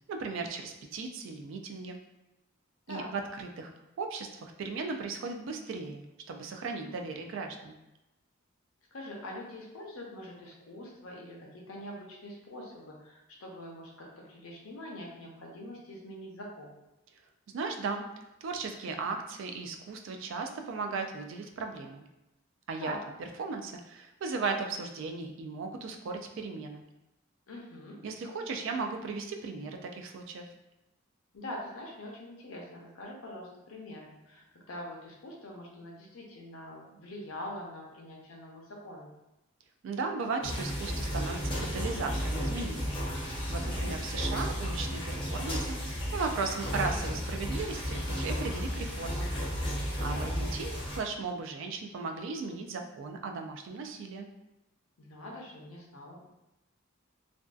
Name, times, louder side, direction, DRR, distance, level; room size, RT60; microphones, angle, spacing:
voice 1, 0.1-2.0 2.9-3.7 4.0-7.8 17.5-18.0 18.4-22.0 22.7-22.9 23.2-26.8 28.0-30.5 39.8-43.0 43.5-49.3 50.0-54.3, right 4 dB, 65° right, 5 dB, 0.3 m, -36 dB
voice 2, 8.9-16.7 22.8-23.0 27.5-28.0 31.3-39.1 43.6-44.0 50.0-50.3 55.0-56.3, left 1 dB, 85° left, -1 dB, 0.6 m, -44 dB
sound 1, 40.4-51.0, equal, 25° left, 0.5 m, -33 dB
2.5 x 2.3 x 2.3 m, 0.94 s
head